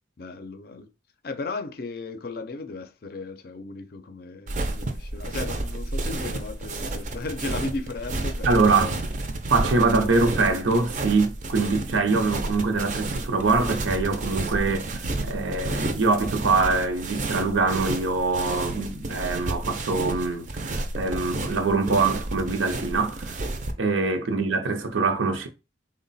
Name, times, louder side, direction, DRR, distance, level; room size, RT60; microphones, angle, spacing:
voice 1, 0.2-0.9 1.2-9.0 10.0-10.1 24.3-24.4, left 3 dB, 50° left, 0.5 m, -35 dB
sound 1, 4.5-23.7, right 2 dB, 40° right, 0.5 m, -31 dB
voice 2, 8.4-8.9 9.5-23.4 23.8-25.5, right 3 dB, 90° right, 0.6 m, -24 dB
3.9 x 2.1 x 4.0 m
head